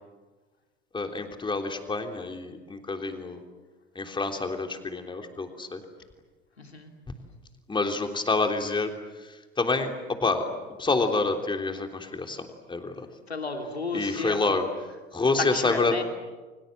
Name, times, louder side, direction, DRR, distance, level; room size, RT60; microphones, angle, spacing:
voice 1, 0.9-3.4 3.9-5.8 7.7-8.9 9.6-10.5 10.8-13.1 13.9-14.7 15.1-16.0, left 3 dB, 15° left, 5 dB, 3.4 m, -27 dB
voice 2, 6.6-6.9 13.3-14.5 15.4-16.0, left 3 dB, 85° left, 5 dB, 2.9 m, -32 dB
30.0 x 24.5 x 7.8 m, 1.3 s
figure-of-eight pair, 75°, 31 cm